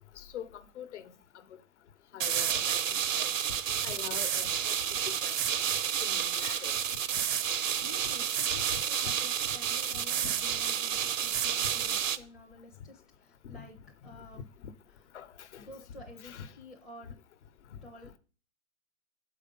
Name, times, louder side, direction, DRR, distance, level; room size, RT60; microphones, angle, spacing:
voice 1, 0.2-1.2 2.1-2.8 3.1-3.3 3.8-5.4 6.0-6.7 8.5-8.8 9.9-10.3 13.4-13.6 15.1-15.6 16.2-16.5, left 9 dB, 60° left, 1.0 m, -44 dB
sound 1, 2.2-12.2, right 9 dB, 75° right, 0.8 m, -30 dB
voice 2, 7.8-14.5 15.6-17.2 17.8-18.2, left 2 dB, ahead, 0.5 m, -51 dB
7.4 x 4.9 x 5.2 m
hypercardioid pair, 150°, 39 cm